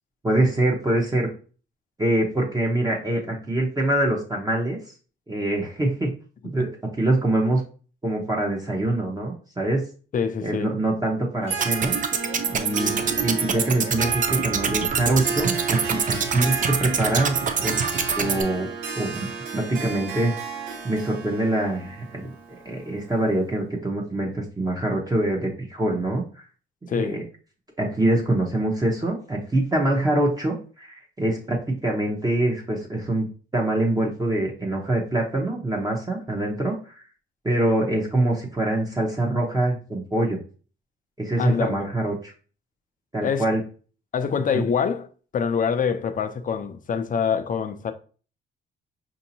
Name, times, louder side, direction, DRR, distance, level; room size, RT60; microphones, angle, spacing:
voice 1, 0.2-1.3 2.0-4.8 5.3-6.1 6.5-6.7 7.0-7.6 8.0-9.8 10.4-11.9 12.5-17.7 18.2-18.7 19.0-20.3 20.8-22.3 22.6-26.2 26.9-27.2 27.8-37.0 37.4-40.4 41.2-42.3 43.1-43.6 44.5-44.6, right 1 dB, 20° right, 0.8 m, -24 dB
voice 2, 10.1-10.7 26.9-27.2 41.4-41.8 43.2-43.4 44.1-45.1 45.3-47.9, left 6 dB, 40° left, 0.5 m, -25 dB
Harp, 11.4-23.3, right 5 dB, 90° right, 0.9 m, -33 dB
sound 1, 11.5-18.4, right 6 dB, 40° right, 0.5 m, -25 dB
5.0 x 2.7 x 2.7 m
cardioid pair, 90°, 20 cm